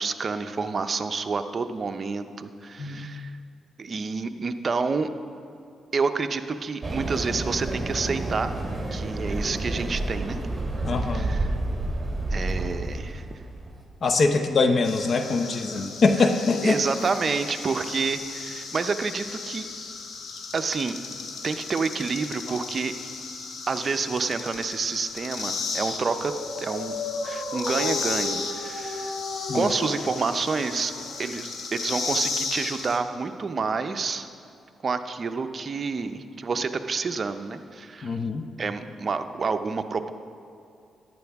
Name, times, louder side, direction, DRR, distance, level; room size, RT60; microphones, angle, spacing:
voice 1, 0.0-3.3 3.8-5.1 5.9-8.6 8.9-10.4 11.0-11.6 12.3-13.3 15.7-15.8 16.2-16.3 16.6-19.7 20.5-21.0 21.4-22.9 23.7-26.3 26.6-26.9 27.2-29.1 29.5-30.9 31.2-34.3 34.8-38.2 38.6-40.1, right 4 dB, 45° right, 8 dB, 0.6 m, -28 dB
voice 2, 2.8-3.1 10.8-11.3 14.0-16.8 29.5-29.6 38.0-38.4, left 3 dB, 50° left, 7 dB, 0.7 m, -23 dB
sound 1, 6.8-13.8, right 2 dB, 20° right, 2.7 m, -30 dB
sound 2, 14.8-33.0, left 4 dB, 70° left, 1.2 m, -35 dB
Dog, 25.8-31.5, left 2 dB, 85° left, 1.6 m, -34 dB
14.0 x 10.5 x 3.5 m, 2.6 s
cardioid pair, 75°, 0 cm